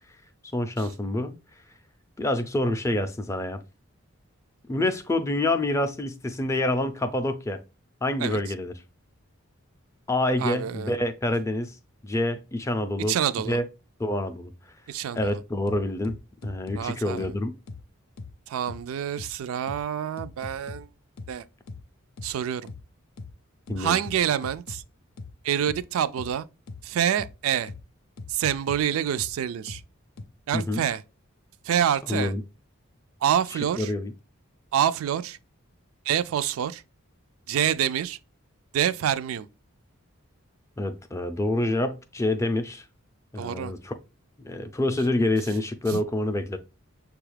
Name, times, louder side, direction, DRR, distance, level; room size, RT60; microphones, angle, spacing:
voice 1, 0.5-1.3 2.2-3.6 4.7-7.6 8.0-8.7 10.1-11.8 12.0-13.2 13.5-13.6 14.0-14.5 15.1-16.2 16.4-17.5 23.7-24.0 30.5-30.8 32.1-32.4 33.5-34.1 40.8-42.8 43.3-43.9 44.4-46.6, left 1 dB, 15° left, 0.4 m, -27 dB
voice 2, 10.4-10.9 13.1-13.6 14.9-15.4 16.8-17.3 18.5-20.9 21.3-21.4 22.2-22.7 23.8-24.8 25.4-26.5 26.8-27.7 28.3-29.8 30.5-31.0 31.6-32.3 33.2-33.9 34.7-35.4 36.1-36.8 37.5-38.2 38.7-39.5 43.4-43.7 45.9-46.0, right 9 dB, 75° right, 0.3 m, -27 dB
sound 1, 15.2-15.3 15.7-16.8 17.2-17.3 17.7-17.8 18.2-18.3 18.7-18.8 19.2-19.3 19.7-19.8 20.2-20.8 21.2-21.3 21.7-21.8 22.2-22.3 22.7-22.8 23.2-23.3 23.7-24.8 25.2-25.3 25.7-25.8 26.2-26.3 26.7-26.8 27.2-27.3 27.7-27.8 28.2-28.8 29.2-29.3 29.7-29.8 30.2-30.3, left 3 dB, 85° left, 0.5 m, -39 dB
6.3 x 2.3 x 3.2 m
head